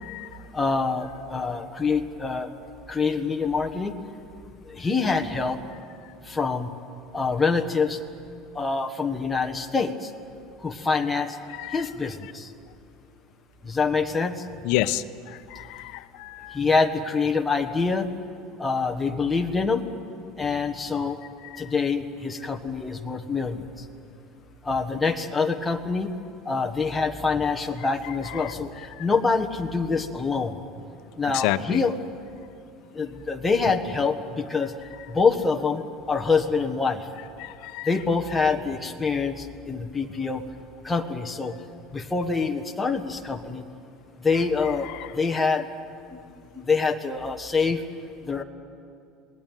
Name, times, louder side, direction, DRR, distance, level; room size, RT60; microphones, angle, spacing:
voice 1, 0.0-0.5 11.5-11.9 14.6-16.8 21.4-21.7 28.0-29.1 31.3-31.8 37.4-38.0 44.8-45.5, left 14 dB, 60° left, 12 dB, 0.9 m, -31 dB
voice 2, 0.5-2.5 2.9-3.9 4.7-5.6 6.3-6.7 7.1-8.0 8.5-10.1 10.6-11.3 11.7-12.5 13.6-14.3 16.5-18.0 18.6-19.8 20.4-21.2 21.6-23.6 24.7-26.1 26.5-28.7 29.0-30.5 31.2-31.9 32.9-34.7 35.1-35.8 36.1-37.0 37.9-40.4 40.8-41.5 41.9-43.6 44.2-44.9 45.1-45.6 46.5-47.8 48.3-48.4, left 4 dB, 10° left, 4 dB, 1.3 m, -25 dB
27.0 x 19.5 x 9.1 m, 2.4 s
cardioid pair, 170°, 0 cm